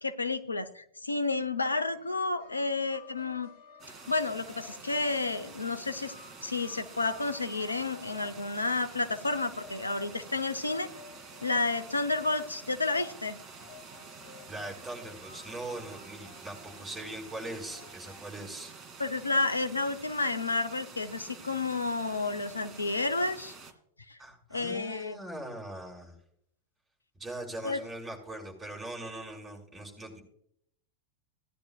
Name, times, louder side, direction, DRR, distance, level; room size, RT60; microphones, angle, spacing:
voice 1, 0.0-3.5 4.1-6.1 6.4-10.9 11.4-13.4 19.0-23.5 24.1-24.2 24.5-25.2 27.6-27.8, left 3 dB, 80° left, 9 dB, 0.9 m, -31 dB
sound 1, 1.9-18.3, left 4 dB, 55° left, 2.4 m, -54 dB
sound 2, 3.8-23.7, right 5 dB, 25° right, 2.2 m, -49 dB
voice 2, 14.5-18.7 24.2-26.1 27.2-30.2, right 1 dB, 10° right, -2 dB, 5.7 m, -41 dB
17.5 x 10.5 x 2.4 m, 0.69 s
figure-of-eight pair, 90°, 0 cm